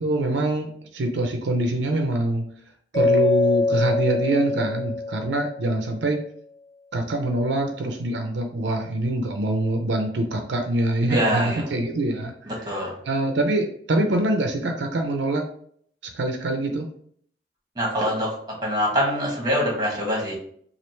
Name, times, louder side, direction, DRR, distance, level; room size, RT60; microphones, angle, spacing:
voice 1, 0.0-2.5 2.9-6.2 6.9-12.3 13.1-15.4 16.1-16.9, right 1 dB, 80° right, 4 dB, 0.5 m, -24 dB
Mallet percussion, 2.9-5.9, left 3 dB, 20° left, 0.5 m, -24 dB
voice 2, 11.1-11.7 12.5-13.0 17.7-20.4, equal, 25° right, -2 dB, 1.1 m, -24 dB
3.2 x 2.5 x 4.2 m, 0.62 s
head